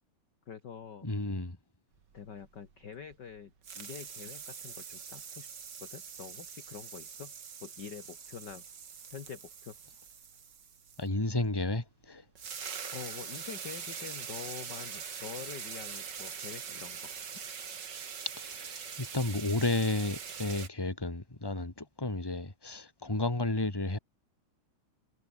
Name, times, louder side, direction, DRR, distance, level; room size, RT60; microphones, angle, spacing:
voice 1, 0.5-1.1 2.1-5.5 5.8-7.3 7.6-8.6 9.1-9.8 12.9-17.1, left 7 dB, 45° left, 1.6 m, -46 dB
voice 2, 1.0-1.6 11.0-12.2 18.4-24.0, left 2 dB, 10° left, 2.3 m, -32 dB
sound 1, 2.1-3.4 3.6-11.1 12.0-12.1 12.3-20.7, right 6 dB, 40° right, 2.1 m, -43 dB
omnidirectional pair, 3.7 m